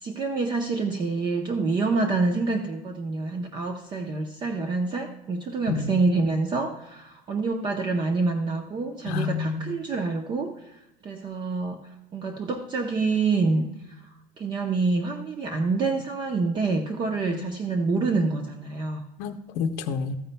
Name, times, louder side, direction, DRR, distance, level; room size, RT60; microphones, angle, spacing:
voice 1, 0.0-11.8 12.1-14.0 14.4-19.0, right 3 dB, 30° right, 4 dB, 0.7 m, -27 dB
voice 2, 9.1-9.7 17.3-17.5 18.0-18.1 19.2-20.1, left 6 dB, 65° left, 6 dB, 0.7 m, -29 dB
13.5 x 9.4 x 2.2 m, 0.92 s
cardioid pair, 155°, 16 cm